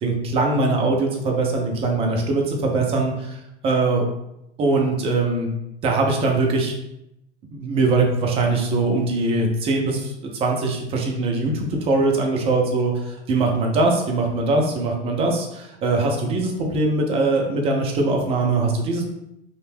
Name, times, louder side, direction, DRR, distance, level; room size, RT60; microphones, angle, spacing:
voice 1, 0.0-4.1 4.6-5.5 5.8-6.7 7.5-19.1, right 3 dB, 20° right, 1 dB, 0.3 m, -22 dB
2.5 x 2.1 x 3.3 m, 0.86 s
hypercardioid pair, 115°, 35 cm